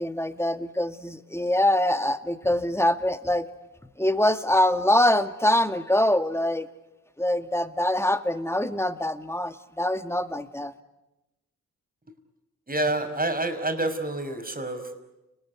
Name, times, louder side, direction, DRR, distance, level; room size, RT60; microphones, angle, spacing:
voice 1, 0.0-3.5 4.0-6.7 7.2-10.7, left 1 dB, 10° left, 9 dB, 2.2 m, -24 dB
voice 2, 12.7-15.1, right 2 dB, 25° right, 6 dB, 5.9 m, -28 dB
30.0 x 20.5 x 9.7 m, 1.0 s
supercardioid pair, 45°, 34 cm